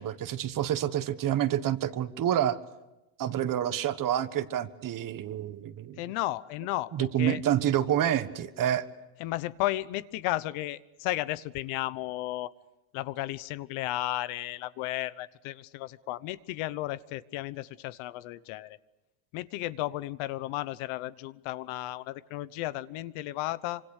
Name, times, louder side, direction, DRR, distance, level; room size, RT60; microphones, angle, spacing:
voice 1, 0.0-2.6 3.2-6.0 6.9-8.8, right 11 dB, 40° right, 12 dB, 1.4 m, -28 dB
voice 2, 6.0-7.4 9.2-12.5 12.9-18.8 19.3-23.8, left 16 dB, 80° left, 16 dB, 1.1 m, -34 dB
27.0 x 26.0 x 6.6 m, 0.97 s
cardioid pair, 155°, 48 cm